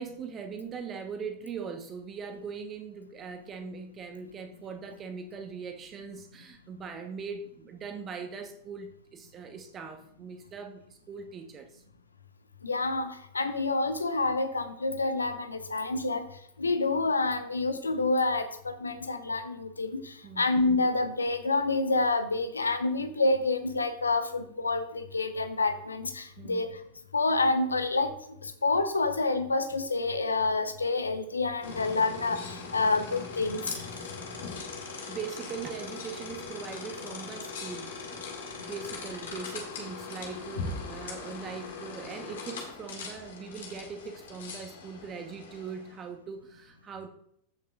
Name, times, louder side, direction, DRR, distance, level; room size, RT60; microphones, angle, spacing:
voice 1, 0.0-11.8 20.2-20.4 26.4-26.6 34.8-47.1, right 5 dB, 25° right, 5 dB, 1.1 m, -41 dB
voice 2, 12.6-16.3 16.6-26.7 27.1-28.1 28.4-33.6, left 3 dB, 75° left, 9 dB, 0.8 m, -28 dB
sound 1, 31.6-46.0, left 4 dB, 60° left, 2.0 m, -40 dB
14.5 x 5.9 x 2.4 m, 0.71 s
figure-of-eight pair, 90°, 0 cm